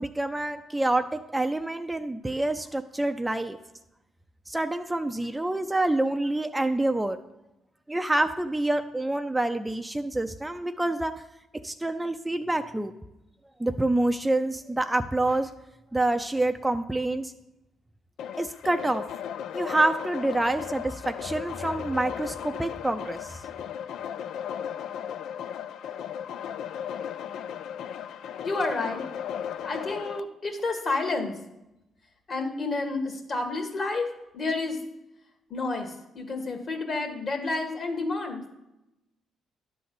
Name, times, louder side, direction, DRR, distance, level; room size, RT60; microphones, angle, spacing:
voice 1, 0.0-3.6 4.5-7.2 7.9-11.1 11.6-12.9 13.6-15.5 15.9-17.3 18.4-19.0 19.5-23.4, right 2 dB, 10° right, 7 dB, 0.5 m, -27 dB
sound 1, 18.2-30.2, left 9 dB, 75° left, 0.4 m, -36 dB
voice 2, 28.4-29.0 29.6-31.4 32.3-34.1 34.3-34.8 35.5-38.4, left 3 dB, 45° left, 4 dB, 1.9 m, -30 dB
11.0 x 3.9 x 7.7 m, 0.93 s
cardioid pair, 90°, 0 cm